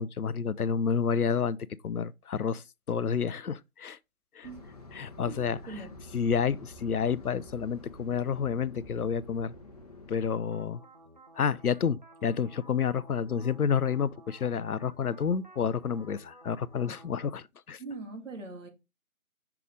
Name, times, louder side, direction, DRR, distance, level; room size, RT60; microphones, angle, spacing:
voice 1, 0.0-1.6 1.8-4.0 4.4-4.5 4.9-5.6 6.1-9.5 10.1-10.8 11.4-17.8, left 6 dB, 90° left, 0.6 m, -29 dB
sound 1, 4.4-10.3, left 2 dB, 25° left, 1.0 m, -48 dB
sound 2, 10.4-17.3, right 1 dB, 35° right, 0.6 m, -54 dB
voice 2, 17.8-18.7, right 3 dB, 60° right, 2.1 m, -41 dB
5.8 x 4.8 x 3.8 m
figure-of-eight pair, 155°, 43 cm